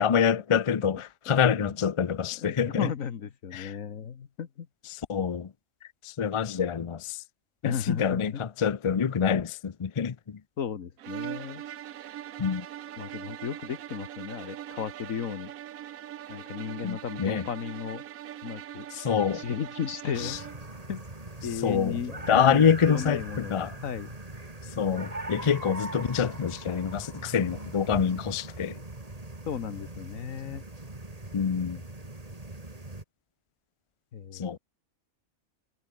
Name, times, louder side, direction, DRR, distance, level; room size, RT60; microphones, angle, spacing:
voice 1, 0.0-2.9 3.5-3.8 4.9-5.5 6.0-7.2 7.6-10.4 12.4-12.7 16.8-17.4 18.9-19.4 20.2-20.4 21.6-22.0 22.3-23.7 24.8-28.8 31.3-31.8 34.3-34.6, left 7 dB, 50° left, 0.3 m, -26 dB
voice 2, 2.4-4.7 7.6-8.4 10.6-11.6 13.0-15.5 16.3-18.0 18.4-18.9 19.3-20.4 20.9-21.0 21.4-24.1 29.5-30.6 34.1-34.6, left 7 dB, 70° left, 1.6 m, -35 dB
sound 1, 11.0-20.7, right 11 dB, 75° right, 1.2 m, -41 dB
sound 2, 20.1-33.0, right 2 dB, 25° right, 2.8 m, -41 dB
omnidirectional pair, 1.5 m